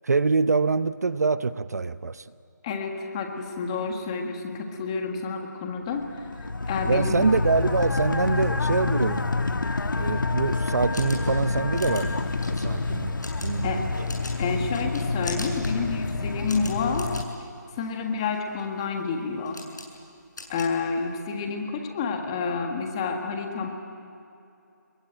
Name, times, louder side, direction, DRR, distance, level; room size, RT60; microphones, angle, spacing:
voice 1, 0.0-2.3 6.8-9.2 10.0-13.1 13.4-13.9, right 4 dB, 55° right, 15 dB, 0.7 m, -25 dB
voice 2, 2.6-6.1 6.7-7.3 13.6-13.9 14.4-17.1 17.8-19.6 20.5-23.7, left 5 dB, 15° left, 4 dB, 1.6 m, -29 dB
sound 1, 6.0-17.2, left 3 dB, 80° left, 1.5 m, -28 dB
sound 2, 10.9-21.4, left 2 dB, 65° left, 7.1 m, -43 dB
28.0 x 22.0 x 9.0 m, 2.7 s
figure-of-eight pair, 170°, 10 cm